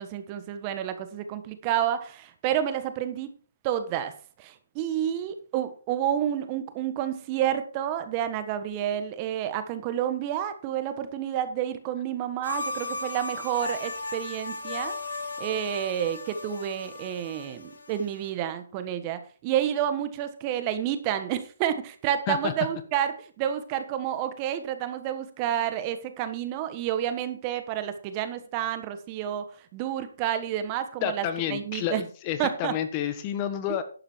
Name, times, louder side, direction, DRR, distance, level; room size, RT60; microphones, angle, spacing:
voice 1, 0.0-3.3 3.6-4.1 4.4-15.0 15.4-29.4 29.7-32.0 32.4-32.7 33.7-33.8, right 10 dB, 25° right, 10 dB, 1.4 m, -29 dB
sound 1, 12.4-18.3, left 3 dB, 70° left, 2.7 m, -36 dB
voice 2, 31.0-33.8, left 10 dB, 30° left, 10 dB, 1.3 m, -30 dB
12.0 x 8.8 x 4.6 m, 0.40 s
hypercardioid pair, 150°, 0 cm